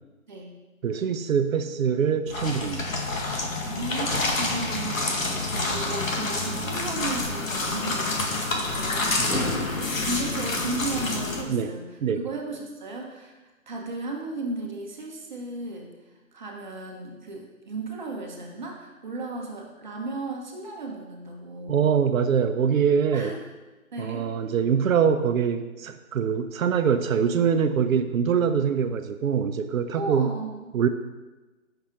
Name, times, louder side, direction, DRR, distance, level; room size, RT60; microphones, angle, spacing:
voice 1, 0.8-3.0 9.2-9.7 11.5-11.7 12.0-12.2 21.7-23.3 24.0-30.3 30.7-30.9, right 7 dB, 75° right, 9 dB, 0.5 m, -24 dB
sound 1, 2.3-11.4, left 2 dB, 70° left, 1.1 m, -28 dB
voice 2, 3.6-9.7 10.0-13.3 13.7-15.9 16.3-21.8 23.1-23.4 23.9-24.3 30.0-30.7, right 2 dB, 35° right, 0 dB, 0.7 m, -35 dB
7.0 x 5.5 x 2.4 m, 1.2 s
hypercardioid pair, 160°, 41 cm